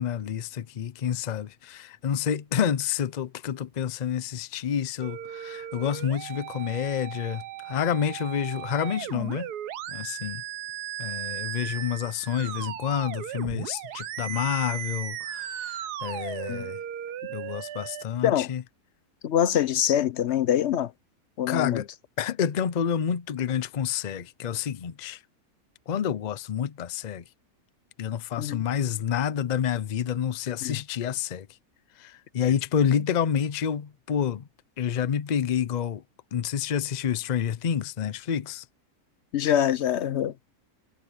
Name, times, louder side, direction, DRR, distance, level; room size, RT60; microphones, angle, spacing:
voice 1, 0.0-9.5 9.9-10.4 11.0-16.8 17.3-18.6 21.5-21.9 22.2-25.2 25.9-27.2 28.0-31.5 32.0-34.4 34.8-36.0 36.3-38.6, left 8 dB, 85° left, 0.3 m, -28 dB
sound 1, 5.0-18.0, right 11 dB, 90° right, 1.3 m, -36 dB
voice 2, 19.2-20.9 21.4-21.8 28.4-28.6 30.6-30.8 39.3-40.3, left 10 dB, 55° left, 0.8 m, -24 dB
omnidirectional pair, 1.6 m